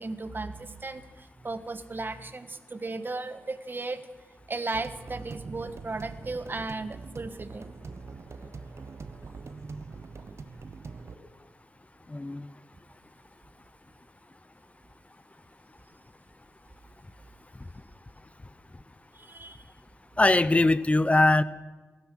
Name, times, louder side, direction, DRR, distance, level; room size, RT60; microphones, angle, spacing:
voice 1, 0.0-4.0 4.5-7.7 19.1-19.7, right 3 dB, 35° right, 10 dB, 1.4 m, -36 dB
sound 1, 4.7-11.2, right 4 dB, 55° right, 1.1 m, -43 dB
sound 2, 6.5-6.6 7.4-7.5 8.3-8.4 9.3-9.4 10.2-10.3 11.1-11.2, right 5 dB, 80° right, 3.5 m, -54 dB
voice 2, 12.1-12.5 20.2-21.4, left 2 dB, 25° left, 16 dB, 0.8 m, -21 dB
16.5 x 14.0 x 6.3 m, 1.3 s
supercardioid pair, 40°, 6 cm